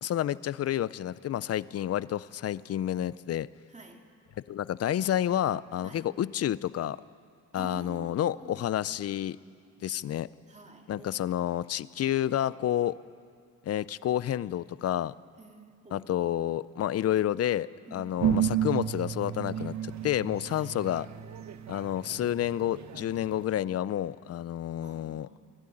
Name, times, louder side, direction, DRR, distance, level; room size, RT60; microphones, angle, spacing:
voice 1, 0.0-3.5 4.5-7.0 7.5-9.4 9.8-10.3 10.9-13.0 13.7-15.1 15.9-21.1 21.7-25.3, left 11 dB, 55° left, 18 dB, 0.6 m, -30 dB
voice 2, 3.7-4.1 5.8-6.1 7.5-8.7 10.5-11.4 15.4-16.2 17.9-18.3 20.5-20.7 24.8-25.4, right 3 dB, 25° right, 3 dB, 2.6 m, -49 dB
sound 1, 18.2-23.4, right 10 dB, 65° right, 1.1 m, -32 dB
24.0 x 12.5 x 9.9 m, 2.2 s
cardioid pair, 90°, 30 cm